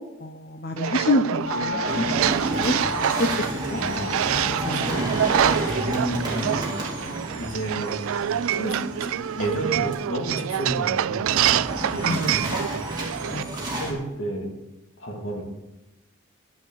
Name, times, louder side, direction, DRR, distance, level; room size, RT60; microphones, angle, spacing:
voice 1, 0.2-2.7 3.2-3.4 3.7-3.8 4.6-4.8 12.0-12.5 13.3-13.5, left 2 dB, 45° left, 6 dB, 0.7 m, -27 dB
sound 1, 0.8-13.4, right 10 dB, 80° right, 0.3 m, -26 dB
sound 2, 1.4-13.7 14.0-14.1, left 6 dB, 85° left, 4.3 m, -39 dB
sound 3, 1.8-9.9 11.2-13.9, right 1 dB, 20° right, 2.2 m, -31 dB
voice 2, 3.7-4.1 4.5-5.1 5.7-6.7 7.3-8.0 8.5-12.6 13.2-14.5 15.0-15.4, right 1 dB, 65° left, 0 dB, 2.7 m, -31 dB
10.5 x 7.3 x 7.9 m, 0.97 s
head